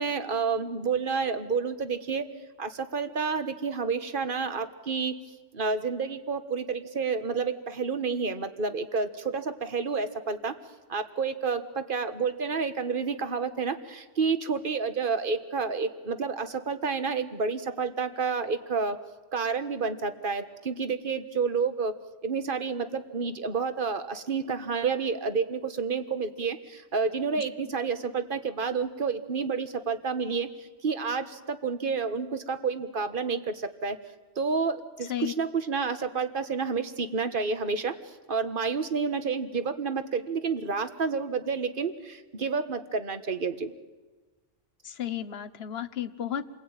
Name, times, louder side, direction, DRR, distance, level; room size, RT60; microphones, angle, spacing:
voice 1, 0.0-2.3 2.6-5.2 5.5-10.5 10.9-19.0 19.3-30.5 30.8-34.0 34.3-43.7, right 5 dB, 45° right, 9 dB, 1.7 m, -30 dB
voice 2, 44.8-46.4, left 10 dB, 60° left, 12 dB, 1.3 m, -33 dB
29.5 x 21.0 x 9.0 m, 1.3 s
omnidirectional pair, 1.2 m